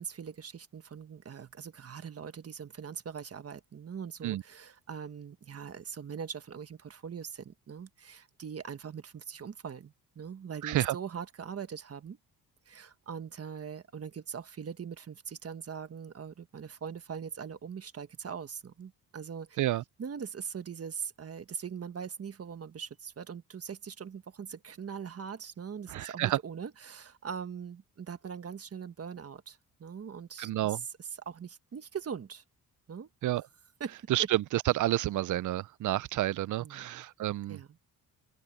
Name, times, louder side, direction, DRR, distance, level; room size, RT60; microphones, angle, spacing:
voice 1, 0.0-12.2 12.7-19.6 20.0-30.8 31.2-32.4 32.9-33.1 33.8-34.3 36.6-37.0 37.5-37.7, right 7 dB, 40° right, 1.4 m, -41 dB
voice 2, 10.6-11.0 19.6-19.8 25.9-26.4 30.4-30.8 33.2-33.4 34.1-37.6, right 15 dB, 55° right, 0.5 m, -29 dB
open air
cardioid pair, 110°, 37 cm